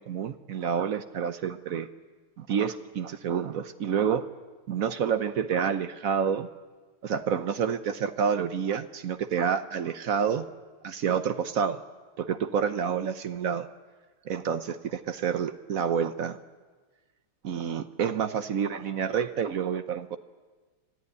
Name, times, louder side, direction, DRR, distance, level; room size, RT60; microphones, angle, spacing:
voice 1, 0.0-1.9 2.4-4.3 4.7-6.5 7.0-10.5 10.8-11.8 12.2-13.7 14.2-16.4 17.4-20.2, right 7 dB, 60° right, 10 dB, 0.9 m, -28 dB
25.0 x 14.5 x 9.5 m, 1.4 s
omnidirectional pair, 2.4 m